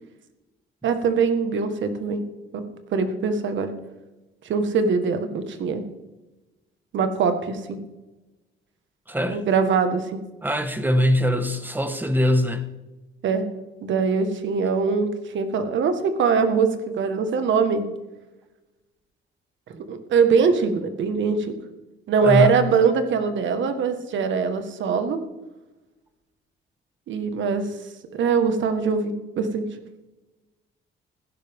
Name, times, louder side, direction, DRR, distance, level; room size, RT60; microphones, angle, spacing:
voice 1, 0.8-2.2 2.5-3.7 4.5-5.8 6.9-7.8 9.3-10.2 13.2-13.4 13.8-17.9 19.7-21.5 22.1-25.2 27.1-27.8 28.1-29.6, right 5 dB, 70° right, 8 dB, 1.6 m, -22 dB
voice 2, 9.1-9.4 10.4-12.7 22.2-22.6, left 1 dB, 10° right, 9 dB, 1.4 m, -22 dB
15.5 x 11.0 x 3.7 m, 1.1 s
cardioid pair, 90°, 20 cm